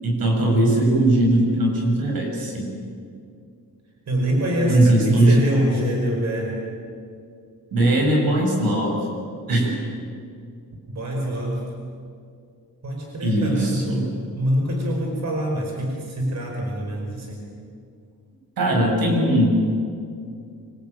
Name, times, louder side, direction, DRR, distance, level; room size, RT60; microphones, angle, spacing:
voice 1, 0.0-2.7 4.7-5.4 7.7-9.0 9.5-9.8 13.2-14.1 18.6-19.5, right 1 dB, 85° right, 1 dB, 7.8 m, -19 dB
voice 2, 4.1-6.6 10.9-11.7 12.8-14.1 14.4-17.4, equal, 50° right, 0 dB, 5.1 m, -25 dB
26.0 x 25.5 x 9.0 m, 2.4 s
wide cardioid pair, 170°, 34 cm